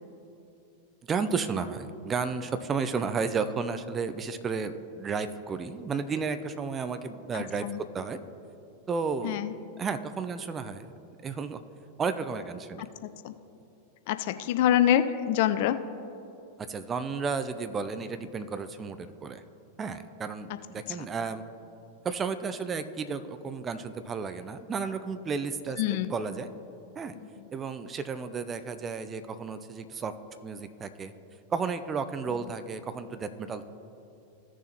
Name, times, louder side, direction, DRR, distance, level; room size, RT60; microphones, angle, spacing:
voice 1, 1.1-8.2 8.9-9.4 9.8-10.9 11.2-11.6 12.0-12.9 16.7-19.4 19.8-21.4 22.0-26.5 27.0-27.2 27.5-30.1 30.4-31.1 31.5-33.6, right 5 dB, 20° right, 10 dB, 0.5 m, -33 dB
voice 2, 7.3-7.8 9.2-9.5 13.2-13.3 14.1-15.8 21.0-21.1 25.8-26.1, left 11 dB, 50° left, 12 dB, 0.4 m, -25 dB
15.5 x 6.8 x 2.9 m, 2.9 s
figure-of-eight pair, 90°, 0 cm